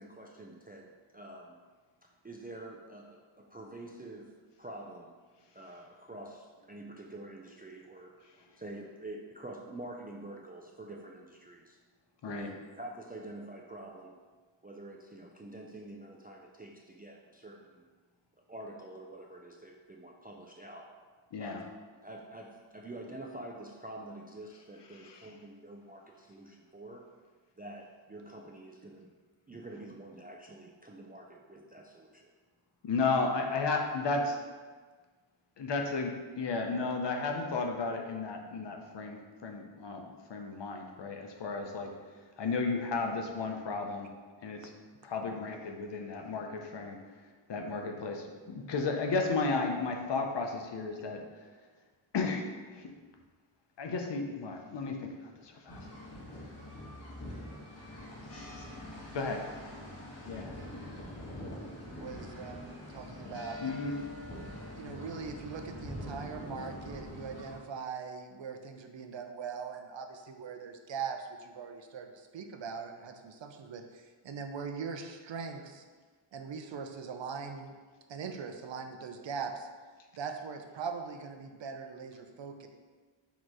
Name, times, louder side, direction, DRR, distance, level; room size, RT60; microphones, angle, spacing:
voice 1, 0.0-1.6 2.0-5.2 5.5-11.8 12.2-14.2 14.6-17.9 18.5-20.9 21.4-21.6 22.0-27.0 27.6-29.1 29.5-32.3, right 1 dB, 20° right, -1 dB, 0.3 m, -47 dB
voice 2, 21.3-21.6 24.9-25.3 32.8-34.4 35.6-41.9 42.4-44.1 44.4-44.7 45.0-47.0 47.5-51.2 52.1-52.5 52.7-52.9 53.8-55.9 58.3-58.9 59.1-59.6 60.3-60.5 63.6-64.0, left 3 dB, 60° left, 3 dB, 0.7 m, -34 dB
sound 1, 55.7-67.6, left 1 dB, 30° left, 1.5 m, -44 dB
voice 3, 61.9-63.6 64.8-75.8 76.3-77.7 78.1-79.7 80.1-82.7, right 5 dB, 65° right, 5 dB, 0.6 m, -41 dB
6.5 x 3.0 x 4.7 m, 1.4 s
wide cardioid pair, 175°, 49 cm